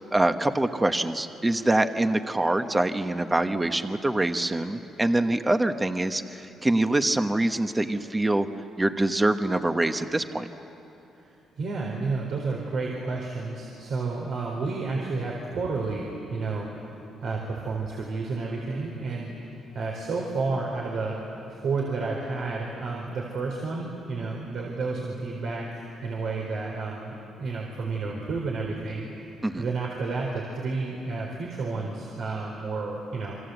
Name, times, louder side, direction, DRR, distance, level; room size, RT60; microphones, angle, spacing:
voice 1, 0.0-8.5 8.8-10.5 29.4-29.6, right 2 dB, 15° right, 8 dB, 1.2 m, -25 dB
voice 2, 11.6-16.7 17.2-19.3 19.7-21.2 21.5-25.7 26.0-29.1 29.6-33.3, right 3 dB, 70° right, -2 dB, 4.3 m, -31 dB
28.5 x 25.5 x 8.1 m, 2.9 s
cardioid pair, 90°, 0 cm